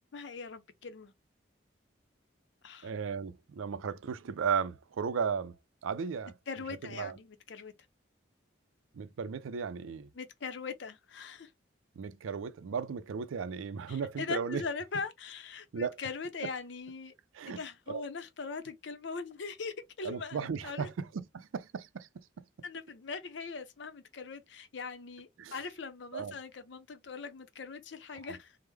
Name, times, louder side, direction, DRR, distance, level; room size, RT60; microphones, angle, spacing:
voice 1, 0.1-1.1 2.6-2.9 6.5-7.7 10.1-11.5 13.9-17.1 17.5-20.9 22.6-28.6, left 4 dB, 65° left, 0.5 m, -41 dB
voice 2, 2.8-6.3 6.8-7.1 8.9-10.1 12.0-14.6 15.7-16.0 17.3-17.6 17.9-18.0 20.0-22.4 25.4-25.6 26.1-26.4, right 6 dB, 90° right, 0.4 m, -35 dB
3.3 x 2.0 x 3.1 m
head